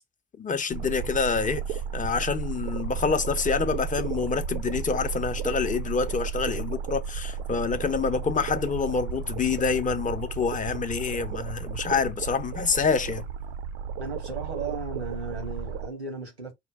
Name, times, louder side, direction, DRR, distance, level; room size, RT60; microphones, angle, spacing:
voice 1, 0.4-13.2, left 5 dB, 25° left, 0.7 m, -27 dB
sound 1, 0.7-15.9, right 7 dB, 70° right, 0.7 m, -33 dB
voice 2, 14.0-16.5, right 4 dB, 90° right, 1.1 m, -35 dB
5.1 x 2.3 x 3.4 m
figure-of-eight pair, 45°, 32 cm